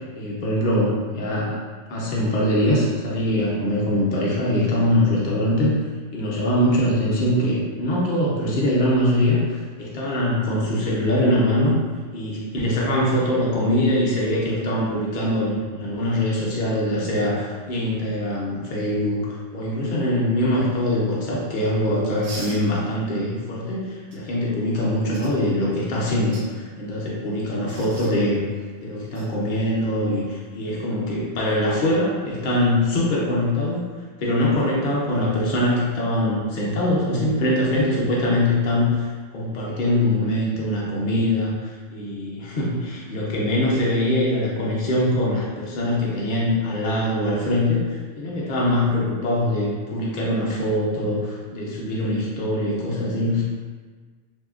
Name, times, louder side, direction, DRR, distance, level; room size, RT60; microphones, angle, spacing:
voice 1, 0.2-1.6 1.9-5.7 6.1-11.8 12.1-28.4 28.8-33.8 34.2-53.4, left 1 dB, 50° left, -5 dB, 0.8 m, -23 dB
sound 1, 22.2-22.6 24.1-24.2 25.1-25.3 26.2-26.5 27.7-28.1 29.1-29.3 31.3-31.5, right 2 dB, 85° right, 1.0 m, -38 dB
3.1 x 2.7 x 2.4 m, 1.5 s
omnidirectional pair, 1.1 m